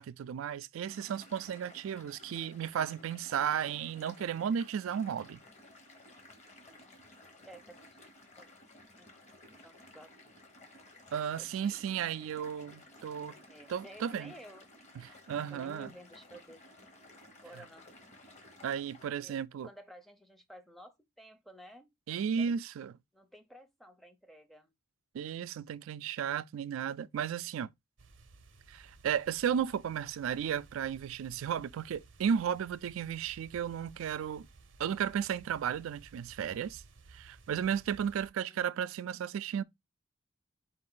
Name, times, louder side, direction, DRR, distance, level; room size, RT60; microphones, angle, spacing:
voice 1, 0.0-5.4 11.1-13.4 13.7-14.3 15.0-15.9 18.6-19.7 22.1-22.9 25.1-27.7 28.7-34.5 34.8-36.8 37.1-39.6, right 8 dB, 85° right, 0.3 m, -34 dB
sound 1, 0.9-19.1, left 1 dB, 35° left, 1.0 m, -56 dB
voice 2, 7.2-8.1 8.4-8.5 9.0-9.1 9.5-10.1 11.4-12.0 13.5-14.8 15.3-16.6 17.2-17.9 19.2-22.6 23.1-24.7 38.5-39.2, equal, ahead, 0.5 m, -54 dB
sound 2, 28.0-38.3, right 3 dB, 65° right, 0.7 m, -57 dB
4.4 x 2.5 x 3.7 m
head